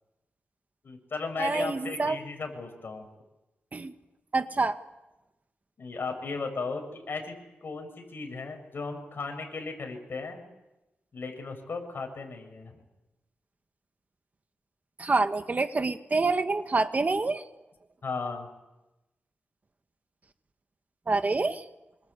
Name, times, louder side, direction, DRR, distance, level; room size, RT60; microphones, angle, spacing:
voice 1, 0.8-3.1 5.8-10.4 11.1-12.8 18.0-18.5, left 4 dB, 60° left, 4 dB, 7.2 m, -36 dB
voice 2, 1.4-2.2 3.7-3.9 4.3-4.8 15.0-17.4 21.1-21.6, right 3 dB, 40° right, 8 dB, 1.8 m, -27 dB
27.0 x 25.0 x 8.4 m, 0.99 s
cardioid pair, 75°, 4 cm